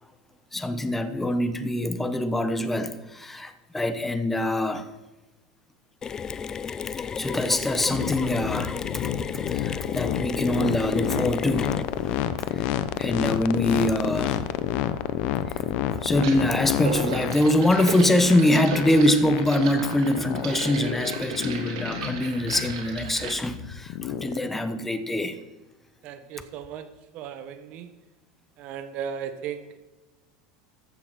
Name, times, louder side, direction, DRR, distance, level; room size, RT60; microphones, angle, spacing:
voice 1, 0.5-4.9 7.2-9.1 9.5-11.8 12.5-12.7 13.0-14.4 16.0-25.4, left 1 dB, 10° left, 10 dB, 1.0 m, -24 dB
Mechanisms, 6.0-12.3, left 6 dB, 25° left, 0.5 m, -34 dB
sound 1, 7.9-24.4, left 12 dB, 60° left, 0.8 m, -29 dB
sound 2, 14.9-15.0 16.2-16.5 16.8-23.3, right 6 dB, 80° right, 3.0 m, -35 dB
voice 2, 26.0-27.9 28.6-29.8, right 8 dB, 50° right, 10 dB, 1.3 m, -36 dB
14.5 x 7.1 x 6.0 m, 1.1 s
supercardioid pair, 120°, 3 cm